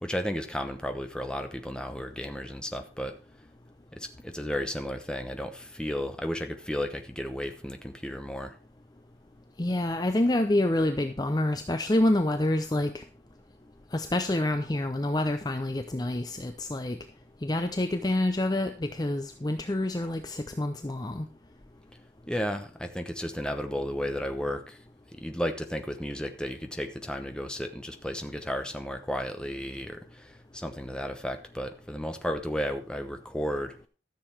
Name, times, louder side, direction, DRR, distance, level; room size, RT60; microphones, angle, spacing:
voice 1, 0.0-3.1 3.9-8.6 22.3-24.8 25.1-33.8, equal, 5° left, 6 dB, 1.0 m, -33 dB
voice 2, 9.6-13.0 13.9-17.0 17.4-21.3, left 1 dB, 20° left, 7 dB, 0.6 m, -27 dB
13.5 x 6.9 x 4.5 m, 0.35 s
head